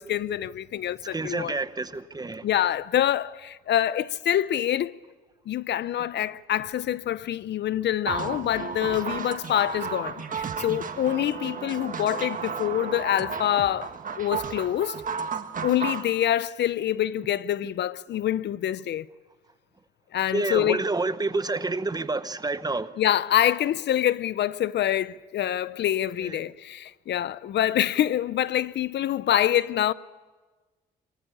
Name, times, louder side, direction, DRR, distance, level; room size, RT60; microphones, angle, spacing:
voice 1, 0.0-1.5 2.4-4.9 5.5-15.0 15.6-19.1 20.1-20.8 23.0-29.9, left 11 dB, 60° left, 0.5 m, -26 dB
voice 2, 1.1-2.5 20.3-22.9 26.2-26.4, right 3 dB, 20° right, 0.9 m, -29 dB
sound 1, 8.1-16.1, right 6 dB, 40° right, 1.6 m, -33 dB
23.0 x 14.5 x 8.5 m
cardioid pair, 90°, 20 cm